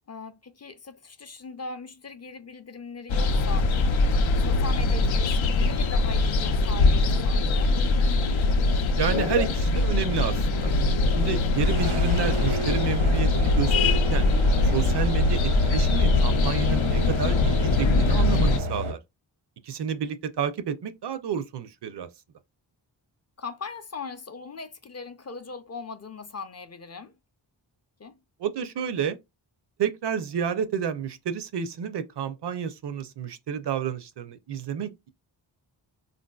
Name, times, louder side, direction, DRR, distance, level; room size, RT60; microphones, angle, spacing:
voice 1, 0.1-3.7 4.4-7.7 23.4-27.1 28.0-28.1, left 4 dB, 35° left, 0.5 m, -39 dB
sound 1, 3.1-18.6, left 3 dB, 85° left, 0.6 m, -22 dB
voice 2, 9.0-10.7 11.1-14.3 14.6-19.0 19.6-22.1 28.4-29.2 29.8-35.1, right 7 dB, 60° right, 0.5 m, -30 dB
sound 2, 11.6-18.9, right 1 dB, 90° right, 1.0 m, -31 dB
3.6 x 2.6 x 2.2 m
cardioid pair, 65°, 46 cm